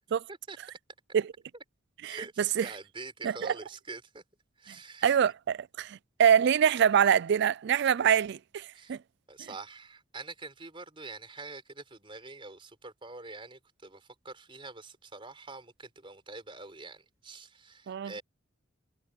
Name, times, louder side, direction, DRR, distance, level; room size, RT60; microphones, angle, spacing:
voice 1, 2.0-4.2 4.6-5.2 8.7-9.0 9.3-18.2, right 3 dB, 25° right, 4.4 m, -45 dB
voice 2, 5.0-9.0 17.9-18.1, right 8 dB, 55° right, 0.3 m, -25 dB
head